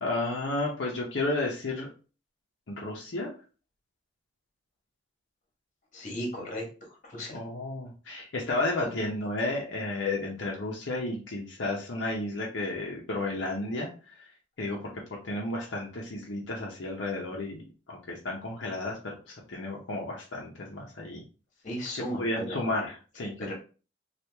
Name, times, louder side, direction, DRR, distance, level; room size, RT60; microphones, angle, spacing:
voice 1, 0.0-1.9 2.7-3.3 7.3-13.9 14.2-14.3 14.6-14.8 15.2-21.2 22.2-23.5, left 2 dB, 70° left, -2 dB, 0.7 m, -32 dB
voice 2, 5.9-7.4 8.8-8.9 21.6-22.7 23.4-23.5, equal, 40° left, -1 dB, 1.2 m, -36 dB
3.0 x 2.4 x 3.4 m, 0.35 s
head